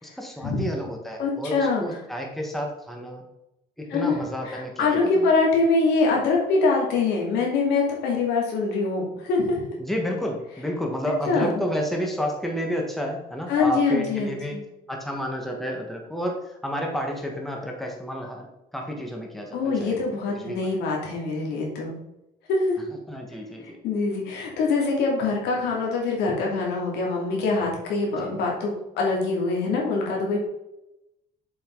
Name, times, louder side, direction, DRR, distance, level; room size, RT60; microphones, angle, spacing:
voice 1, 0.0-3.3 3.8-5.3 9.8-14.6 14.9-18.5 18.7-20.0 20.3-20.6 23.1-23.8 28.2-28.3, equal, ahead, 1 dB, 1.6 m, -30 dB
voice 2, 1.2-2.0 3.9-4.1 4.4-9.6 11.3-11.6 13.5-14.6 19.5-21.9 22.5-22.8 23.8-30.4, left 3 dB, 85° left, -1 dB, 2.6 m, -24 dB
7.2 x 5.6 x 3.9 m, 0.90 s
cardioid pair, 110°, 17 cm